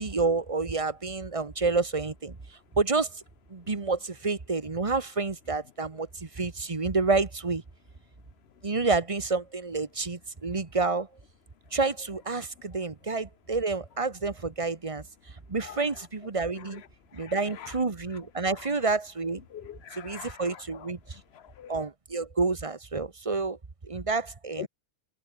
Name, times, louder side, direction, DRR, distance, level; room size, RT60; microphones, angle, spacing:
voice 1, 0.0-2.4 2.8-3.1 3.5-7.6 8.6-11.1 11.7-15.0 15.5-16.8 17.1-19.4 19.9-21.0 21.7-23.6 23.8-24.7, right 3 dB, 25° right, 1.2 m, -29 dB
voice 2, 17.1-17.7 19.5-20.9 21.3-21.8 24.6-24.7, left 9 dB, 65° left, 0.6 m, -43 dB
omnidirectional pair, 1.6 m